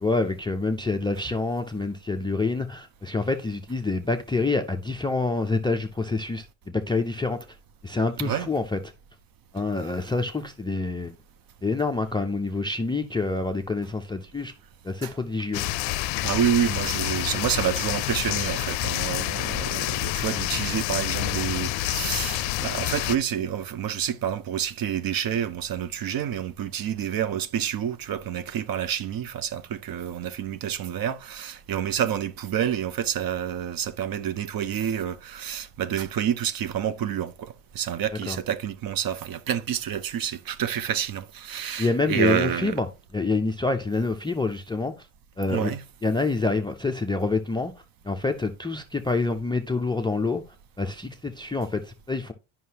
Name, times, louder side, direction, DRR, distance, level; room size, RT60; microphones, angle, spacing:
voice 1, 0.0-7.4 7.8-8.8 9.5-11.1 11.6-14.5 14.8-15.6 38.3-38.4 41.8-42.9 43.1-44.9 45.4-45.7 46.0-47.7 48.1-50.4 50.8-52.3, left 3 dB, 10° left, 0.3 m, -27 dB
sound 1, 15.5-23.2, left 16 dB, 70° left, 0.5 m, -28 dB
voice 2, 16.2-42.8 45.5-45.8, right 9 dB, 45° right, 0.6 m, -28 dB
9.3 x 5.6 x 2.8 m
cardioid pair, 115°, 49 cm